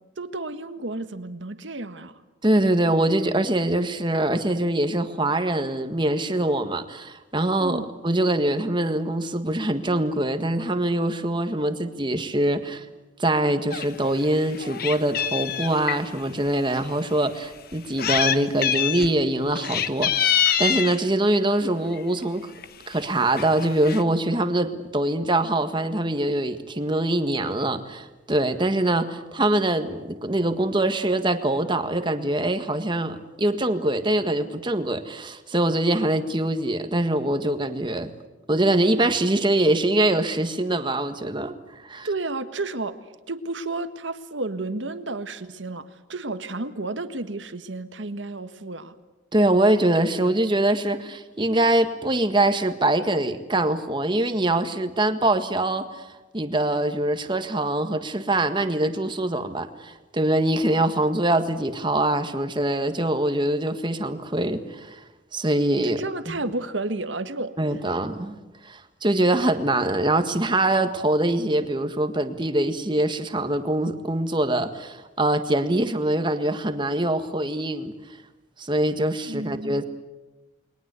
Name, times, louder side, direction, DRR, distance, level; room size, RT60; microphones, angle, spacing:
voice 1, 0.2-2.2 7.6-7.9 42.0-43.0 43.3-48.9 65.8-67.5 79.3-79.8, right 2 dB, 80° right, 10 dB, 1.6 m, -32 dB
voice 2, 2.4-12.8 13.2-22.5 22.9-38.1 38.5-42.1 49.3-56.1 56.3-65.0 65.3-66.0 67.6-68.4 68.6-77.9 78.6-79.8, right 1 dB, 25° right, 8 dB, 1.7 m, -23 dB
Meow, 13.7-13.9 14.3-16.0 16.7-16.8 17.7-18.4 18.6-19.1 19.5-21.0 22.0-22.2 22.6-22.7 22.9-23.1 23.4-24.0, left 9 dB, 50° left, 1.3 m, -25 dB
29.5 x 21.5 x 8.3 m, 1.1 s
head